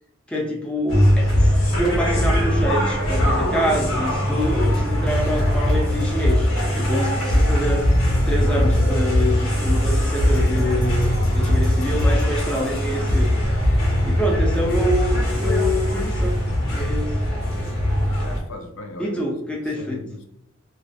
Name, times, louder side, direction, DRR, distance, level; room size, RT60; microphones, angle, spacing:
voice 1, 0.3-6.5 6.8-7.8 8.3-13.4 14.0-16.4 16.7-17.1 19.0-20.0, equal, 5° left, -2 dB, 0.4 m, -26 dB
sound 1, 0.9-18.4, equal, 85° left, 0.8 m, -20 dB
voice 2, 18.1-19.3 19.6-20.3, left 2 dB, 70° left, 4 dB, 0.4 m, -38 dB
2.4 x 2.1 x 2.5 m, 0.75 s
head